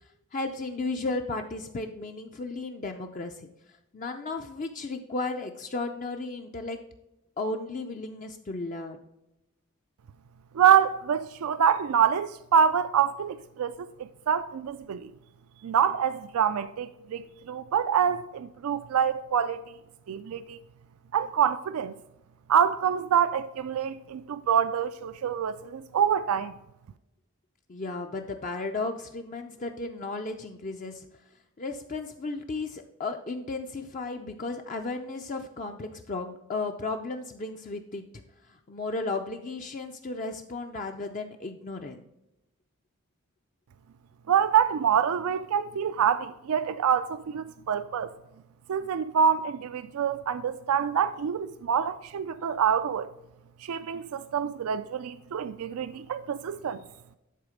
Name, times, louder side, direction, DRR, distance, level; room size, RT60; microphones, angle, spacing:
voice 1, 0.3-3.5 3.9-6.8 7.4-9.0 27.7-31.1 31.6-38.0 38.5-42.0, left 3 dB, 35° left, 0.5 m, -34 dB
voice 2, 10.5-15.1 15.6-19.6 20.1-20.6 21.1-21.9 22.5-26.5 44.3-48.1 48.7-53.1 53.6-56.8, right 8 dB, 75° right, 0.4 m, -26 dB
10.0 x 4.2 x 5.0 m
head